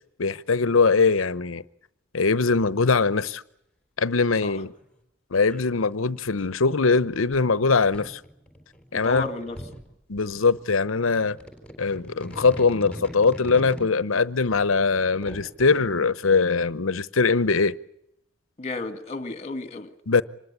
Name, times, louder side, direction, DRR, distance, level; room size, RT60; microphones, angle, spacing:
voice 1, 0.2-1.6 2.1-3.4 4.0-4.7 5.3-8.2 8.9-9.3 10.1-11.4 11.8-17.8 20.1-20.2, left 4 dB, 85° left, 0.9 m, -22 dB
sound 1, 4.7-4.8 5.5-6.4 7.3-7.4 7.9-9.9 10.2-10.6 11.4-13.9 14.4-15.9, equal, 5° left, 4.1 m, -41 dB
voice 2, 8.9-9.6 18.6-19.9, left 3 dB, 35° left, 2.0 m, -32 dB
25.5 x 20.0 x 8.4 m
head